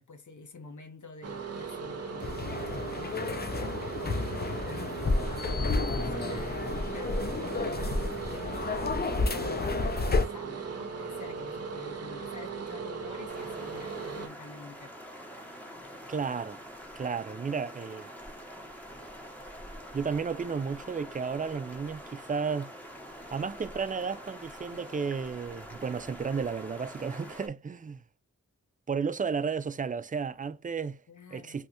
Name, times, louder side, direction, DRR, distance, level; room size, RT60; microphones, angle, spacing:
voice 1, 0.0-14.9 31.1-31.6, left 4 dB, 75° left, 0.8 m, -48 dB
sound 1, 1.2-14.3, right 6 dB, 55° right, 0.7 m, -38 dB
sound 2, 2.2-10.3, left 3 dB, 30° left, 0.5 m, -31 dB
sound 3, 13.3-27.5, equal, 5° left, 1.0 m, -46 dB
voice 2, 16.1-16.6 17.0-18.1 19.9-22.7 23.3-28.0 28.9-31.0 31.3-31.7, right 5 dB, 30° right, 0.3 m, -33 dB
3.1 x 2.5 x 2.8 m
cardioid pair, 40°, 30 cm